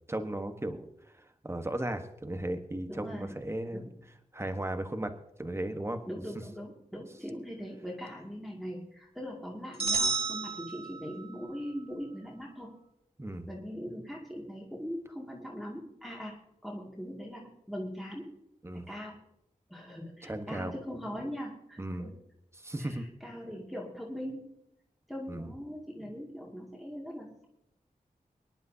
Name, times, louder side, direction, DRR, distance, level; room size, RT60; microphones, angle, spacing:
voice 1, 0.1-3.9 4.3-5.1 5.4-6.0 13.2-13.5 18.6-18.9 20.2-20.7 21.8-22.1 22.5-23.0 25.3-25.5, right 1 dB, 20° right, 7 dB, 1.2 m, -36 dB
voice 2, 2.9-3.3 3.7-3.9 6.1-12.7 13.5-16.4 16.6-18.3 18.7-19.2 19.7-22.1 22.8-24.5 25.1-27.5, equal, ahead, -3 dB, 2.2 m, -41 dB
sound 1, 9.8-11.4, right 4 dB, 45° right, 2.4 m, -31 dB
24.0 x 10.5 x 2.8 m, 0.77 s
wide cardioid pair, 85°, 14 cm